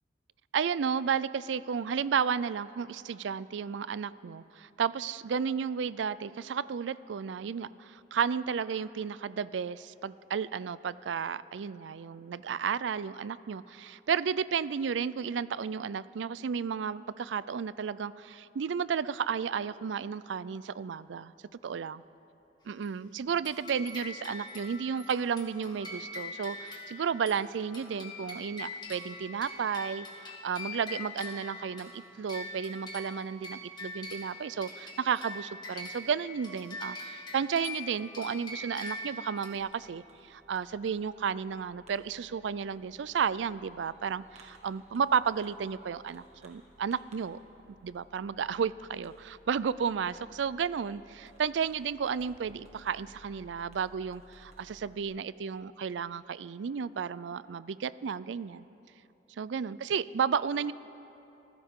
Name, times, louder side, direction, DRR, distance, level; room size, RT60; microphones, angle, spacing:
voice 1, 0.5-21.3 21.6-22.0 22.7-47.4 47.8-58.7 59.4-60.7, right 6 dB, 85° right, 18 dB, 0.4 m, -33 dB
sound 1, 23.4-39.5, left 2 dB, 25° left, 1.8 m, -43 dB
Fireworks, 39.6-55.0, right 1 dB, 40° right, 1.8 m, -60 dB
25.5 x 15.5 x 3.7 m, 2.9 s
head